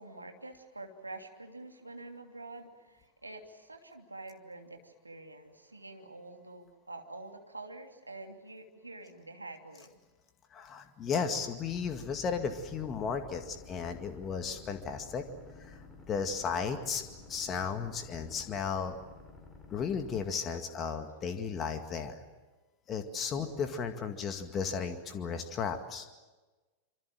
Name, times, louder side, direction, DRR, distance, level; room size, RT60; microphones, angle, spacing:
voice 1, 0.0-10.0, right 2 dB, 85° right, 4 dB, 2.9 m, -47 dB
voice 2, 10.5-15.2 15.6-17.0 17.3-19.0 19.7-22.2 22.9-26.1, left 6 dB, 25° left, 7 dB, 2.0 m, -34 dB
sound 1, 11.7-20.3, left 3 dB, 10° left, 5.9 m, -52 dB
26.0 x 26.0 x 7.6 m, 1.2 s
figure-of-eight pair, 90°, 0 cm